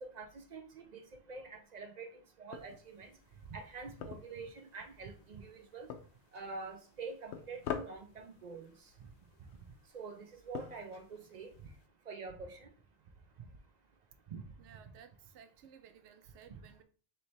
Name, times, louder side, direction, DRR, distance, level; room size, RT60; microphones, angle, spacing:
voice 1, 0.0-3.1 3.5-5.9 6.3-8.7 9.0-9.1 9.9-11.5 12.1-12.7 13.4-13.5 14.3-14.4 16.5-16.6, right 4 dB, 55° right, 0.5 m, -46 dB
sound 1, 2.5-11.9, left 8 dB, 80° left, 0.9 m, -48 dB
voice 2, 14.6-16.8, right 8 dB, 85° right, 0.9 m, -57 dB
3.2 x 3.1 x 4.1 m
omnidirectional pair, 1.2 m